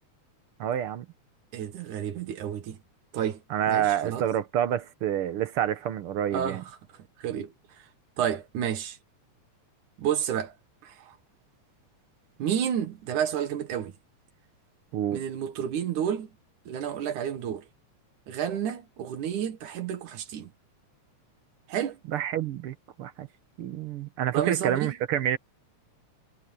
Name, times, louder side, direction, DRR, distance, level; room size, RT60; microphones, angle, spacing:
voice 1, 0.6-1.0 3.5-6.6 14.9-15.2 22.1-23.3 23.6-25.4, right 10 dB, 65° right, 1.5 m, -28 dB
voice 2, 1.5-2.8 3.1-4.3 6.3-6.6 7.2-7.5 8.2-9.0 10.0-10.5 10.8-11.2 12.4-13.9 15.1-16.3 16.7-17.6 18.3-20.5 21.7-22.0 24.3-24.9, right 9 dB, 80° right, 3.0 m, -30 dB
omnidirectional pair, 3.4 m